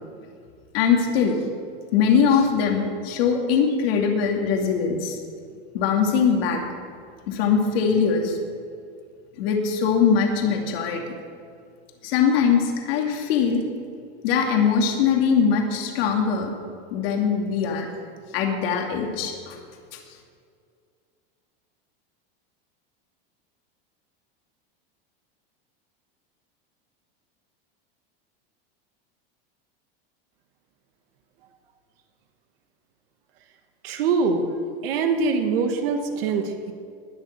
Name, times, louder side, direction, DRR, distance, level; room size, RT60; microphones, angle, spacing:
voice 1, 0.7-1.4 1.9-5.2 5.7-6.6 7.3-8.4 9.4-11.0 12.0-13.6 14.2-16.5 16.9-17.9 18.3-19.6, left 6 dB, 70° left, 1 dB, 2.6 m, -21 dB
voice 2, 33.8-34.5 34.8-36.7, right 4 dB, 70° right, 5 dB, 1.5 m, -23 dB
20.5 x 6.9 x 6.8 m, 2.2 s
supercardioid pair, 155°, 31 cm